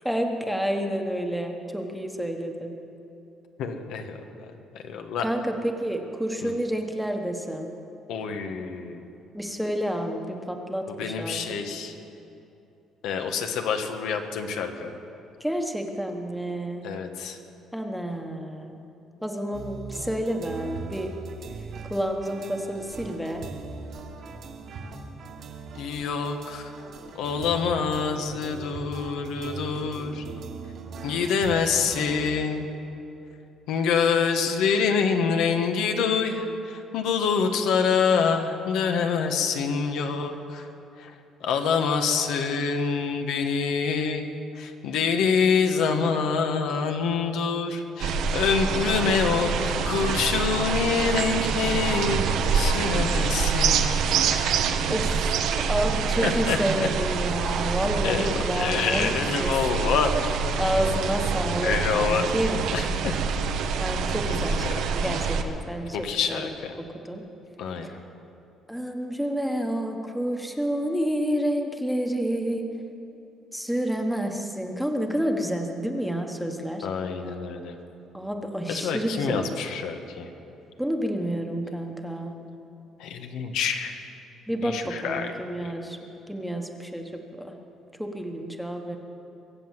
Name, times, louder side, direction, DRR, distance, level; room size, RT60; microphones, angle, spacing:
voice 1, 0.0-2.7 5.2-7.7 9.3-11.4 15.4-16.9 17.7-18.8 19.2-21.1 21.9-23.4 54.4-55.3 55.7-59.1 59.4-59.5 60.6-62.6 63.8-66.4 67.0-67.2 68.7-72.8 73.5-76.9 78.1-79.5 80.8-82.4 84.5-86.0 86.3-87.5 88.0-89.0, equal, ahead, 4 dB, 1.2 m, -29 dB
voice 2, 3.6-4.2 4.7-5.3 6.4-6.5 8.1-9.1 10.9-11.9 13.0-15.0 16.8-17.4 25.8-26.7 27.1-30.2 31.0-32.7 33.7-40.7 41.0-41.1 41.4-44.3 44.5-52.2 52.5-53.9 56.1-56.9 58.0-60.4 61.6-62.3 62.7-63.1 64.7-64.9 65.9-66.8 67.6-68.0 76.8-77.8 78.7-80.3 83.0-84.0 84.6-85.3 85.6-85.7, left 6 dB, 80° left, 5 dB, 1.4 m, -26 dB
sound 1, 19.5-32.3, right 4 dB, 50° right, 1.6 m, -40 dB
sound 2, 48.0-65.4, right 6 dB, 75° right, 1.1 m, -26 dB
23.5 x 7.9 x 7.5 m, 2.8 s
cardioid pair, 135°, 0 cm